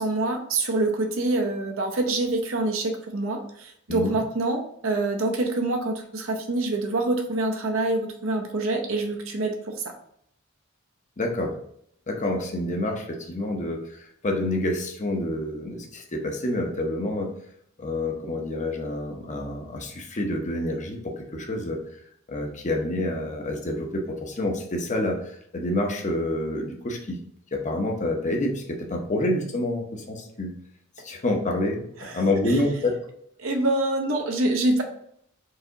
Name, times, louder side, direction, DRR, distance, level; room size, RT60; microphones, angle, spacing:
voice 1, 0.0-9.9 32.0-32.2 33.4-34.8, right 2 dB, 65° right, 3 dB, 0.8 m, -26 dB
voice 2, 11.2-11.5 12.1-17.3 17.8-21.8 22.3-27.2 27.5-30.5 31.0-33.0, left 1 dB, 35° left, 2 dB, 0.8 m, -28 dB
4.7 x 2.7 x 3.8 m, 0.69 s
head